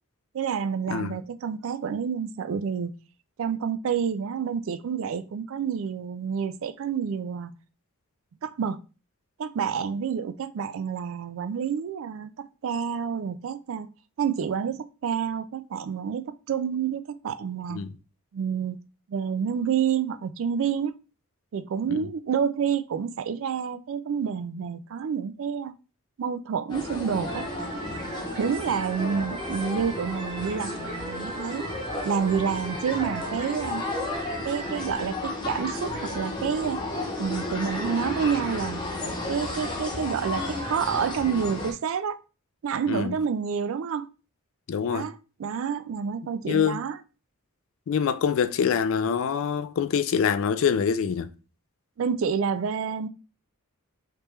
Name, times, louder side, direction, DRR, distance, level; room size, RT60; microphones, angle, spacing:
voice 1, 0.3-2.9 3.4-7.5 8.4-8.8 9.4-12.3 12.6-13.9 14.2-17.8 18.3-18.8 19.1-20.9 21.5-25.7 26.2-27.5 28.4-31.7 32.0-33.8 34.4-36.8 37.2-38.8 39.3-42.2 42.6-44.1 44.9-47.0 52.0-53.1, right 7 dB, 60° right, 0.3 m, -28 dB
voice 2, 0.9-1.2 17.7-17.9 21.9-22.1 42.9-43.2 44.7-45.1 46.5-46.8 47.9-51.3, left 7 dB, 60° left, 0.3 m, -25 dB
sound 1, 26.7-41.7, left 2 dB, 20° left, 0.7 m, -33 dB
sound 2, 27.3-35.0, right 2 dB, 25° right, 0.8 m, -38 dB
Bird vocalization bird call bird song, 27.6-28.8 30.1-31.3 32.7-33.8 35.2-36.3 37.7-38.9, right 4 dB, 90° right, 0.7 m, -48 dB
3.3 x 3.0 x 3.2 m
head